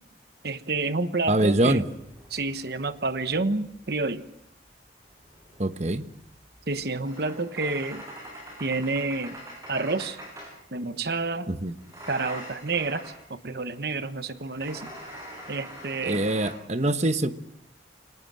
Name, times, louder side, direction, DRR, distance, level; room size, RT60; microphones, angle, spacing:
voice 1, 0.4-1.8 2.3-4.2 6.7-8.0 8.6-9.4 9.7-10.2 10.7-11.5 12.1-14.9 15.5-16.2, right 3 dB, 55° right, 11 dB, 1.1 m, -29 dB
voice 2, 1.3-1.8 5.6-6.0 11.5-11.7 16.0-17.3, right 1 dB, 35° right, 10 dB, 1.1 m, -24 dB
sound 1, 1.8-3.9 5.1-10.6 11.8-13.3 14.4-16.5, equal, 15° right, 7.5 m, -44 dB
25.0 x 19.0 x 7.6 m, 0.75 s
head